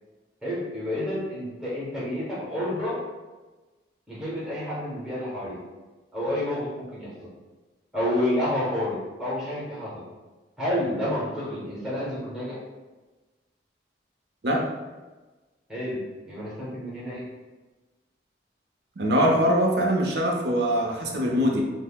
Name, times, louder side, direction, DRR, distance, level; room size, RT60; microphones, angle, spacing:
voice 1, 0.4-3.0 4.1-5.6 6.1-7.1 7.9-10.0 10.6-12.6 15.7-16.0 16.3-17.2, left 1 dB, 5° right, -8 dB, 0.9 m, -29 dB
voice 2, 19.0-21.6, equal, 65° right, 0 dB, 0.6 m, -22 dB
5.4 x 2.0 x 2.2 m, 1.2 s
head